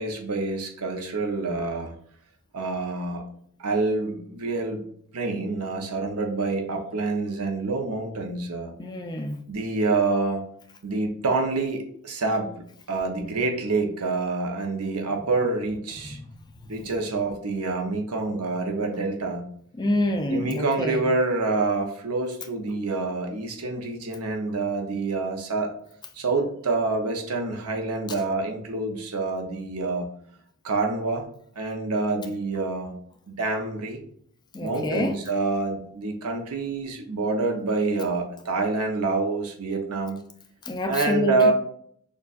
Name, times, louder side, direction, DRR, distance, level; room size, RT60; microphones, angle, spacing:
voice 1, 0.0-1.9 2.5-3.3 3.6-4.8 5.1-8.7 9.5-10.4 10.8-12.5 12.9-16.2 16.7-19.5 20.3-25.7 26.1-30.1 30.6-31.3 31.6-32.9 33.3-34.0 34.6-40.2 40.9-41.5, right 3 dB, 90° right, 3 dB, 0.8 m, -27 dB
voice 2, 8.8-9.4 16.0-16.3 19.7-21.0 34.5-35.2 40.6-41.5, left 1 dB, 20° left, 6 dB, 0.4 m, -27 dB
6.5 x 2.4 x 2.4 m, 0.63 s
head